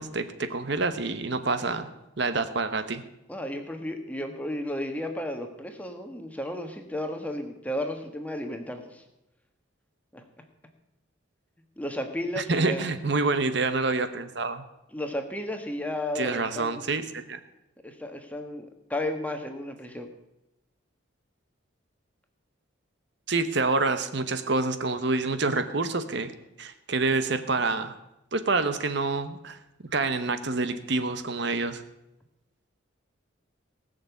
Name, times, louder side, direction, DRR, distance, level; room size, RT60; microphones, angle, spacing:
voice 1, 0.0-1.9 2.2-3.0 12.4-14.6 16.1-17.4 23.3-26.3 26.6-27.9 28.3-29.6 29.9-31.8, right 3 dB, 55° right, 10 dB, 0.9 m, -27 dB
voice 2, 3.3-9.0 10.1-10.2 11.8-12.9 14.9-16.9 17.8-18.6 18.9-20.1, left 1 dB, 5° left, 5 dB, 1.4 m, -33 dB
18.5 x 6.7 x 8.2 m, 0.91 s
head